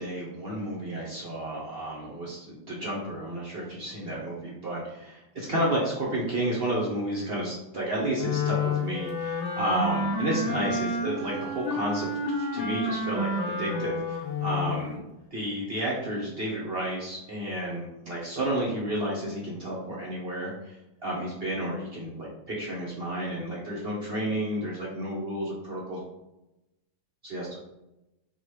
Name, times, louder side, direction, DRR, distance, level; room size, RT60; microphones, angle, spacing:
voice 1, 0.0-12.1 12.4-15.0 15.3-20.8 21.0-26.0 27.2-27.6, right 1 dB, 45° right, -5 dB, 0.8 m, -31 dB
Wind instrument woodwind instrument, 8.1-14.8, left 2 dB, 55° left, 0.7 m, -30 dB
4.0 x 2.4 x 4.7 m, 0.92 s
omnidirectional pair, 2.1 m